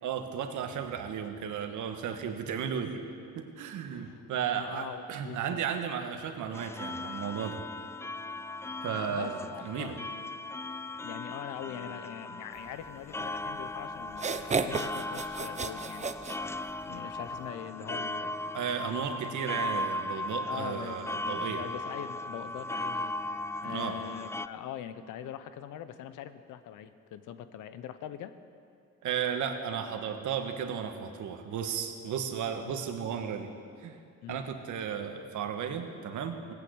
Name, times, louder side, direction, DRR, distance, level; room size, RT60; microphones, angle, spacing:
voice 1, 0.0-3.0 3.3-7.6 8.8-9.9 18.5-21.6 23.6-24.0 29.0-33.5 33.8-34.0 34.3-36.5, right 7 dB, 75° right, 6 dB, 1.4 m, -34 dB
voice 2, 3.9-4.2 4.5-5.6 8.9-10.0 11.0-16.1 16.9-18.4 20.5-23.1 23.6-28.4 32.6-32.8 34.2-34.4, left 10 dB, 90° left, 12 dB, 0.8 m, -43 dB
sound 1, 6.5-24.5, left 2 dB, 10° left, 0.3 m, -37 dB
sound 2, 13.5-13.6 14.1-17.0, right 5 dB, 25° right, 0.6 m, -33 dB
17.0 x 9.1 x 8.0 m, 2.4 s
cardioid pair, 90°, 30 cm